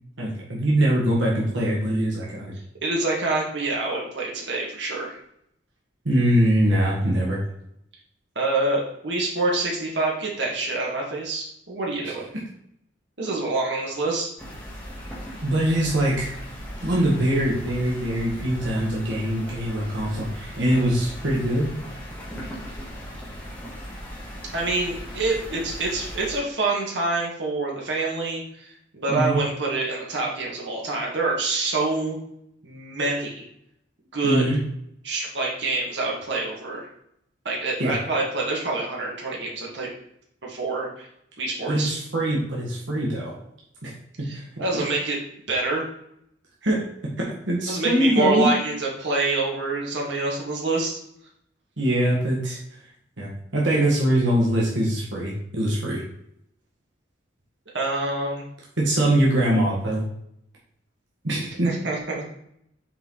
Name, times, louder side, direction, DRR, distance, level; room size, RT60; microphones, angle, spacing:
voice 1, 0.2-2.5 6.0-7.4 15.4-16.4 16.8-21.7 29.1-29.4 34.2-34.6 37.8-37.9 41.7-43.3 43.8-43.9 44.2-44.4 46.6-46.8 47.2-48.5 51.8-52.6 53.2-56.0 58.8-60.0 61.2-61.7, right 1 dB, 85° right, -4 dB, 1.7 m, -23 dB
voice 2, 2.8-5.2 8.4-12.3 13.2-14.3 24.5-32.2 32.6-33.4 34.1-34.5 35.0-36.9 37.5-39.9 40.4-41.1 41.4-42.0 44.2-45.2 45.5-45.9 47.7-51.0 57.7-58.4 61.6-62.3, right 3 dB, 70° right, -2 dB, 1.9 m, -26 dB
sound 1, 14.4-26.4, equal, 5° left, 1.8 m, -38 dB
6.8 x 4.6 x 3.9 m, 0.73 s
head